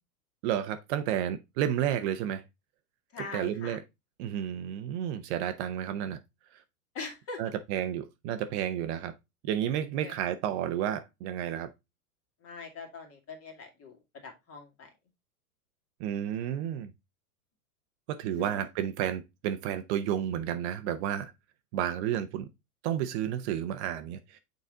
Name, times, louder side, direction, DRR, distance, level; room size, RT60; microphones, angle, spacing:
voice 1, 0.4-2.4 3.2-3.8 4.2-6.2 6.5-6.6 7.4-9.1 9.4-11.7 16.0-16.9 18.1-21.3 21.7-22.5 22.8-24.4, right 10 dB, 45° right, 0.8 m, -31 dB
voice 2, 3.1-3.8 6.9-7.4 10.0-10.1 12.4-14.0 14.2-14.9 18.4-18.5, left 4 dB, 30° left, 2.1 m, -42 dB
6.7 x 4.1 x 3.7 m
hypercardioid pair, 120°, 46 cm